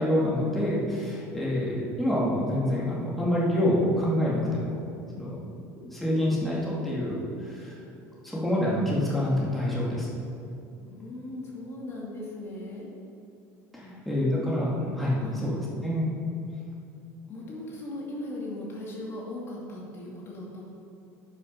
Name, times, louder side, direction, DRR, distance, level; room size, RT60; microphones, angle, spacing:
voice 1, 0.0-4.7 5.1-5.4 5.8-7.8 8.2-10.1 13.7-16.1, left 1 dB, ahead, -7 dB, 2.2 m, -27 dB
voice 2, 10.8-12.9 13.8-13.9 15.2-15.5 17.3-20.6, left 1 dB, 35° left, -4 dB, 2.4 m, -38 dB
10.5 x 6.2 x 5.8 m, 2.6 s
supercardioid pair, 120°, 7 cm